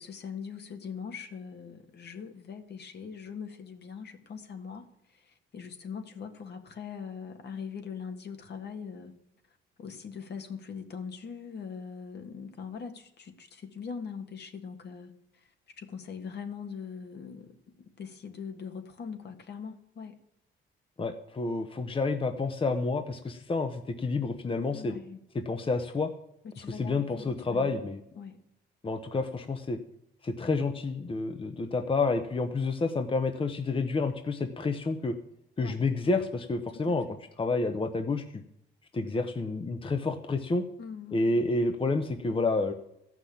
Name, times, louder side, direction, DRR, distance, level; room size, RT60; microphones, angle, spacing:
voice 1, 0.0-9.2 9.8-17.6 18.0-20.2 24.7-25.2 26.4-28.5 35.6-35.8 36.9-37.2 40.8-41.4, left 6 dB, 55° left, 6 dB, 1.7 m, -42 dB
voice 2, 21.0-24.9 25.5-26.1 26.6-28.0 28.8-29.8 30.2-35.1 35.6-37.1 37.4-38.4 38.9-40.7 41.1-42.7, left 3 dB, 25° left, 7 dB, 0.9 m, -29 dB
14.0 x 6.0 x 8.5 m, 0.83 s
cardioid pair, 90°, 20 cm